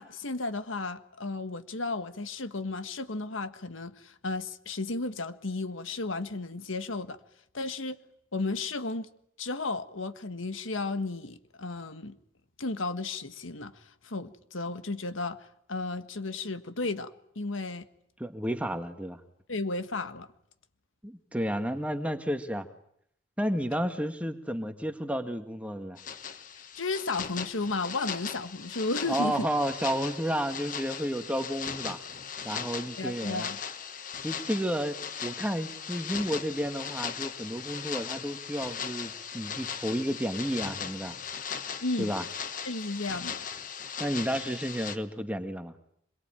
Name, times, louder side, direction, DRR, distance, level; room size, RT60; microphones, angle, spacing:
voice 1, 0.0-7.2 7.5-8.0 8.3-9.1 9.4-12.2 12.6-15.4 15.7-17.9 19.5-20.3 26.8-29.4 33.0-33.6 41.8-42.1 42.6-43.4, left 3 dB, 90° left, 1.5 m, -33 dB
voice 2, 18.2-19.2 21.0-22.7 23.4-26.0 29.1-32.0 32.4-33.5 34.2-41.1 42.0-42.2 44.0-45.7, equal, 5° right, 1.7 m, -31 dB
sound 1, 26.0-45.0, left 7 dB, 45° left, 1.4 m, -38 dB
26.0 x 22.5 x 9.1 m
head